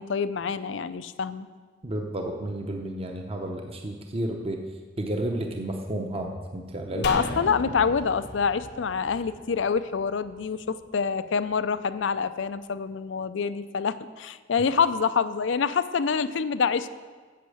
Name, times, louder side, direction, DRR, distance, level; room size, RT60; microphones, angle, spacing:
voice 1, 0.0-1.5 7.0-16.9, left 6 dB, 80° left, 13 dB, 0.5 m, -26 dB
voice 2, 1.8-4.6 5.0-7.1, right 1 dB, 30° right, 3 dB, 0.8 m, -31 dB
sound 1, 7.0-10.4 10.7-10.8, left 2 dB, 65° left, 0.9 m, -36 dB
8.4 x 7.2 x 7.8 m, 1.4 s
head